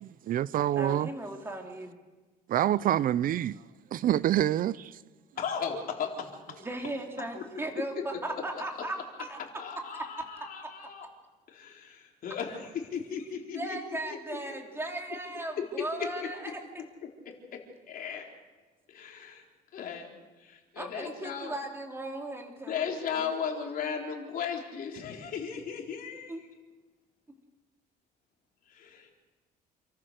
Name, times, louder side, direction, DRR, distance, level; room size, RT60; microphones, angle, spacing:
voice 1, 0.0-1.1 2.5-3.6 3.9-5.0, right 12 dB, 55° right, 0.5 m, -27 dB
voice 2, 0.8-1.9 6.6-9.4 13.5-16.8 20.8-22.8 23.1-23.3 26.3-26.4, right 2 dB, 15° right, 3.3 m, -37 dB
voice 3, 5.4-6.7 7.4-7.6 9.6-11.1 11.5-14.6 15.8-16.1 17.0-17.1 17.9-18.3 18.9-19.4 19.7-21.6 22.7-26.3 28.7-29.1, left 7 dB, 55° left, 4.0 m, -36 dB
28.5 x 14.0 x 6.6 m
cardioid pair, 110°, 17 cm